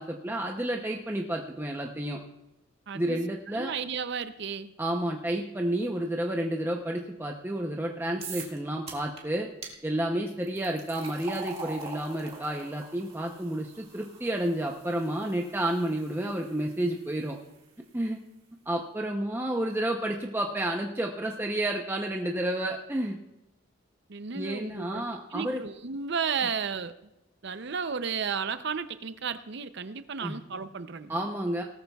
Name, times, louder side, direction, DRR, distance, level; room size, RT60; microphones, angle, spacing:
voice 1, 0.0-2.2 2.9-3.7 4.8-9.5 9.8-17.4 17.9-18.2 18.7-23.2 24.3-25.6 30.2-30.4 31.1-31.6, right 1 dB, 10° right, 1 dB, 0.7 m, -30 dB
voice 2, 2.9-3.2 3.5-4.7 24.1-25.0 25.3-26.9 27.4-31.1, right 6 dB, 55° right, 12 dB, 0.6 m, -33 dB
sound 1, 8.2-8.6 8.9-9.2 9.6-9.7 10.4-17.6, right 4 dB, 30° right, 2.1 m, -44 dB
18.0 x 13.5 x 2.4 m, 0.93 s
head